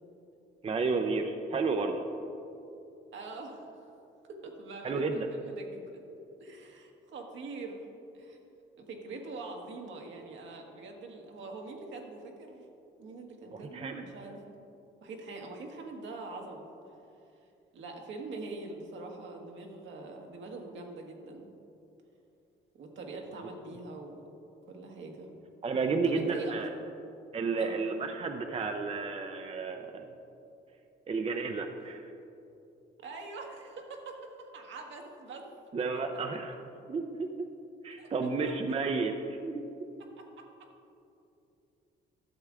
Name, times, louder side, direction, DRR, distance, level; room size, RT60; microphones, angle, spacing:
voice 1, 0.6-2.0 4.8-5.3 13.7-14.0 25.6-26.7 27.3-30.1 31.1-32.0 35.7-36.6 36.9-37.5 37.8-39.9, right 4 dB, 30° right, 5 dB, 0.6 m, -32 dB
voice 2, 3.1-3.9 4.3-6.0 6.4-7.9 8.1-8.4 8.8-12.6 13.0-14.5 15.0-16.6 17.7-21.5 22.7-24.3 24.7-25.3 26.0-26.5 27.6-27.8 33.0-35.5 38.0-38.1 40.2-40.4, right 3 dB, 70° right, 2 dB, 1.3 m, -44 dB
12.0 x 7.2 x 3.6 m, 2.8 s
cardioid pair, 90°, 20 cm